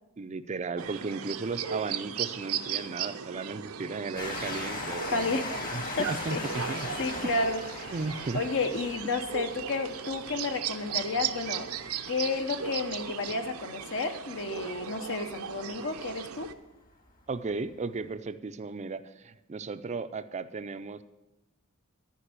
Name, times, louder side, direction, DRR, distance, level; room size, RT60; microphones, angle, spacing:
voice 1, 0.2-5.4 5.7-6.9 7.2-7.3 7.9-8.4 17.3-21.0, right 4 dB, 30° right, 11 dB, 0.4 m, -35 dB
sound 1, 0.8-16.5, right 8 dB, 75° right, 0.6 m, -37 dB
Train, 4.2-15.3 16.1-16.2 16.4-16.5, left 3 dB, 40° left, 1.7 m, -40 dB
voice 2, 5.1-5.6 6.0-7.9 8.3-11.7 12.1-16.5, left 3 dB, 60° left, 8 dB, 0.9 m, -32 dB
13.0 x 5.2 x 8.2 m, 0.98 s
head